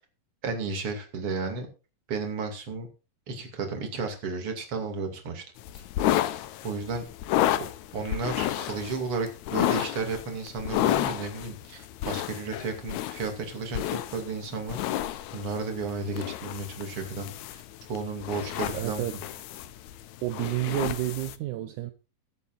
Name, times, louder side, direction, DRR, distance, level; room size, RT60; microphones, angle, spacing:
voice 1, 0.4-1.7 2.1-2.9 3.3-5.4 6.6-7.0 7.9-14.8 15.3-17.3 17.9-19.2, right 4 dB, 40° right, 3.0 m, -33 dB
sound 1, 5.6-21.4, left 13 dB, 90° left, 1.6 m, -31 dB
voice 2, 18.7-19.2 20.2-21.9, right 15 dB, 75° right, 1.9 m, -30 dB
22.0 x 8.4 x 2.6 m
omnidirectional pair, 4.3 m